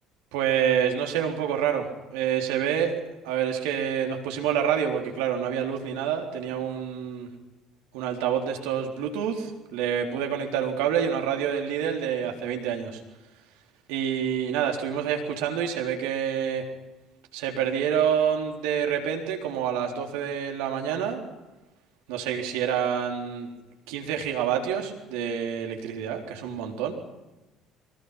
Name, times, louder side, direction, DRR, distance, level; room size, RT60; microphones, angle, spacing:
voice 1, 0.3-1.9 2.1-3.0 3.2-7.3 7.9-13.0 13.9-16.6 17.3-21.2 22.1-23.5 23.9-26.9, right 8 dB, 65° right, 2 dB, 3.9 m, -27 dB
25.5 x 24.5 x 5.9 m, 1.1 s
figure-of-eight pair, 55°, 0 cm